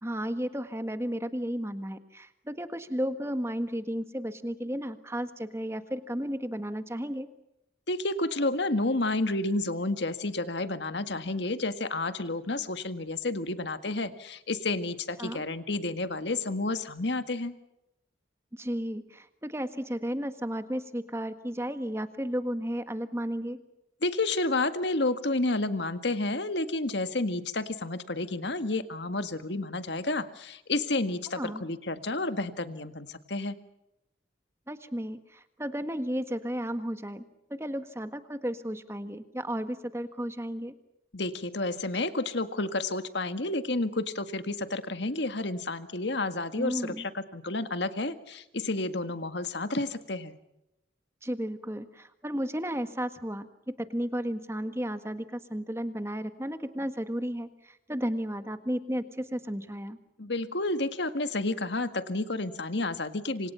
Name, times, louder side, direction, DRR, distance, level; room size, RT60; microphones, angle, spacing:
voice 1, 0.0-7.3 15.2-15.4 18.5-23.6 31.3-31.6 34.7-37.2 37.5-40.7 46.6-47.0 51.2-60.0, equal, 15° right, 10 dB, 1.6 m, -33 dB
voice 2, 7.9-17.5 24.0-33.6 41.1-50.4 60.2-63.5, left 2 dB, 65° left, 10 dB, 1.8 m, -30 dB
27.5 x 26.5 x 5.7 m, 0.87 s
head